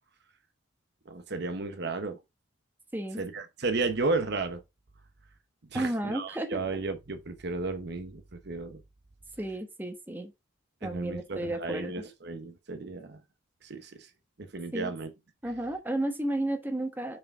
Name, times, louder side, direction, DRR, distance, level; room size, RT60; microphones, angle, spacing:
voice 1, 1.1-2.2 3.2-4.6 5.7-8.8 10.8-13.2 13.6-14.0 14.4-15.1, right 3 dB, 55° right, 1.0 m, -33 dB
voice 2, 2.9-3.2 5.7-6.6 9.4-10.3 10.8-12.0 14.7-14.9 15.4-17.2, right 1 dB, 10° right, 1.2 m, -32 dB
5.6 x 5.1 x 4.8 m
head